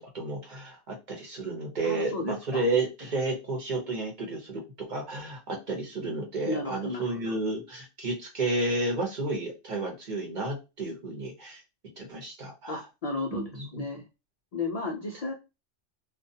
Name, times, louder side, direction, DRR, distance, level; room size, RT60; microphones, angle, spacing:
voice 1, 0.1-11.6 12.0-12.8 13.3-13.8, right 2 dB, 45° right, 0 dB, 0.8 m, -32 dB
voice 2, 1.8-2.6 6.4-7.2 12.7-14.0 14.5-15.3, left 3 dB, 80° left, 0 dB, 0.3 m, -33 dB
2.4 x 2.2 x 2.7 m, 0.27 s
omnidirectional pair, 1.3 m